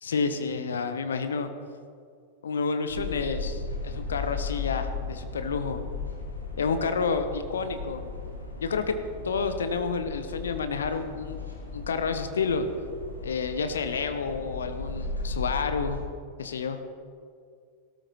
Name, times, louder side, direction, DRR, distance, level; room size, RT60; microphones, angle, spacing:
voice 1, 0.0-1.5 2.4-5.8 6.6-8.0 8.6-8.9 9.2-11.4 11.7-12.7 13.2-16.0 16.4-16.8, left 5 dB, 65° left, 8 dB, 0.9 m, -29 dB
sound 1, 2.9-16.0, left 4 dB, 80° left, 2.1 m, -36 dB
17.5 x 13.0 x 3.0 m, 2.2 s
figure-of-eight pair, 90°, 0 cm